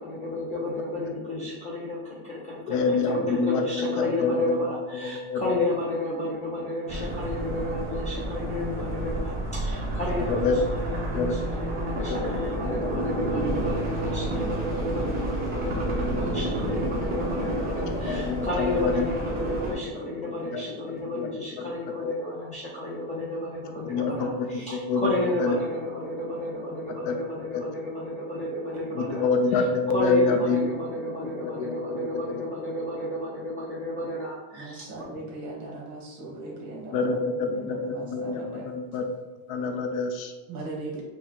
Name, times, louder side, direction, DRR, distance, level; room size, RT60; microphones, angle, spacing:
voice 1, 0.0-34.9, left 1 dB, 15° left, -7 dB, 0.4 m, -32 dB
voice 2, 2.7-4.8 5.0-5.6 10.3-10.6 11.1-11.4 12.1-12.2 18.1-19.1 20.5-20.6 21.1-21.3 22.0-22.1 23.9-24.6 24.9-25.1 25.4-25.6 27.0-27.2 27.5-27.6 28.9-30.7 31.3-32.4 36.9-39.0 39.5-40.3, left 4 dB, 70° left, 5 dB, 0.7 m, -26 dB
sound 1, 6.9-19.7, right 1 dB, 20° right, 0.8 m, -30 dB
voice 3, 34.5-38.7 40.5-41.0, right 2 dB, 45° right, -3 dB, 1.5 m, -39 dB
4.7 x 2.3 x 3.7 m, 1.2 s
cardioid pair, 160°, 50 cm